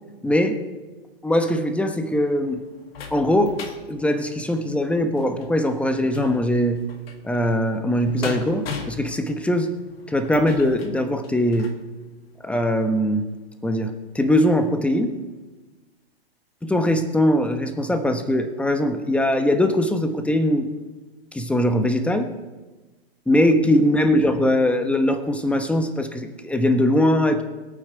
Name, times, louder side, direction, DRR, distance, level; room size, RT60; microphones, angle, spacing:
voice 1, 0.2-0.6 1.2-2.6 3.1-3.6 3.9-6.8 7.2-9.7 10.1-11.7 12.4-13.2 13.6-15.2 16.6-20.7 21.3-22.3 23.3-27.4, left 1 dB, 5° left, 7 dB, 1.1 m, -21 dB
sound 1, 2.0-11.8 12.4-12.5 12.9-13.0, left 6 dB, 70° left, 2.1 m, -38 dB
22.0 x 9.0 x 4.6 m, 1.2 s
hypercardioid pair, 120°, 31 cm